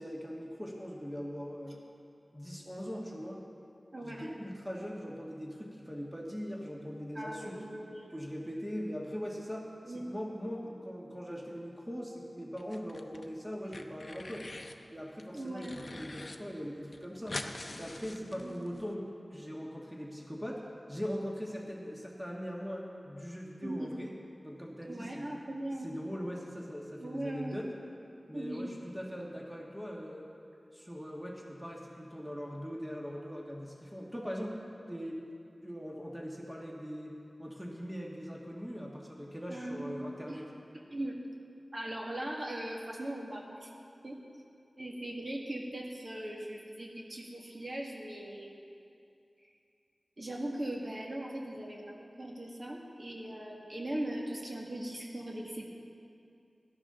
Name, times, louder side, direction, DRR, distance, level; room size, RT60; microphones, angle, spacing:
voice 1, 0.0-1.8 2.3-3.4 4.0-7.6 8.1-14.5 14.9-17.4 17.8-20.6 20.9-24.1 24.4-25.3 25.8-27.7 28.3-30.3 30.7-34.6 34.9-35.2 35.6-37.1 37.4-40.5, equal, 5° right, -2 dB, 1.5 m, -41 dB
voice 2, 3.9-4.3 7.1-8.1 9.8-10.1 15.3-15.8 18.4-18.6 23.6-23.9 24.9-25.9 27.0-27.6 28.3-28.7 39.5-40.4 40.9-41.2 41.7-43.7 44.0-44.2 44.8-48.6 50.2-55.7, right 1 dB, 45° right, -2 dB, 2.0 m, -39 dB
sound 1, 12.6-13.3 13.5-14.8 15.2-16.4 16.6-16.7 16.9-18.8, left 2 dB, 50° left, 0.7 m, -44 dB
16.5 x 12.0 x 3.8 m, 2.6 s
wide cardioid pair, 60°, 0 cm